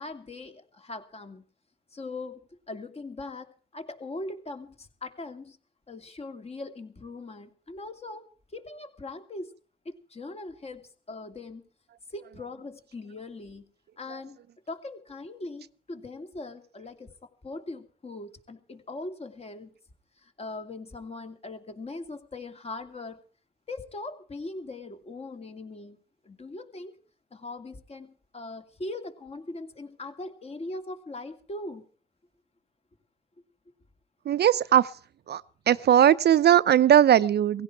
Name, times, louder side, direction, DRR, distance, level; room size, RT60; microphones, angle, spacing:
voice 1, 0.0-1.4 1.9-2.4 2.7-5.6 5.9-8.3 8.5-9.5 9.8-11.7 12.1-13.7 14.0-19.7 20.2-23.2 23.7-26.0 26.2-27.0 27.3-31.9, left 2 dB, 30° left, 7 dB, 2.5 m, -40 dB
voice 2, 34.3-34.9 35.3-37.6, right 10 dB, 55° right, 15 dB, 0.7 m, -20 dB
17.5 x 16.0 x 4.6 m, 0.41 s
cardioid pair, 90°, 20 cm